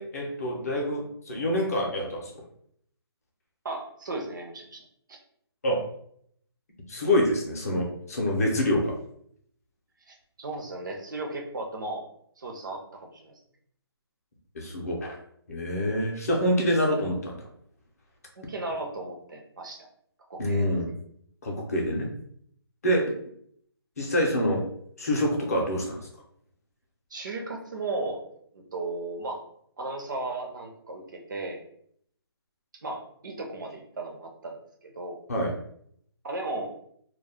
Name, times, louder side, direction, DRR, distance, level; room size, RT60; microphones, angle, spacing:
voice 1, 0.0-2.3 5.6-5.8 6.9-8.9 14.5-15.2 15.5-17.5 20.4-20.9 21.4-22.1 22.8-23.1 24.0-24.7 25.0-26.1 35.3-35.5, equal, 35° left, -1 dB, 0.6 m, -26 dB
voice 2, 3.6-4.8 5.1-5.2 10.1-12.0 12.4-13.3 18.4-19.9 20.3-20.7 27.1-28.2 28.5-29.4 29.8-31.6 32.8-34.6 34.8-35.2 36.2-36.7, right 2 dB, 50° right, 1 dB, 0.6 m, -35 dB
2.3 x 2.1 x 3.3 m, 0.67 s
hypercardioid pair, 175°, 14 cm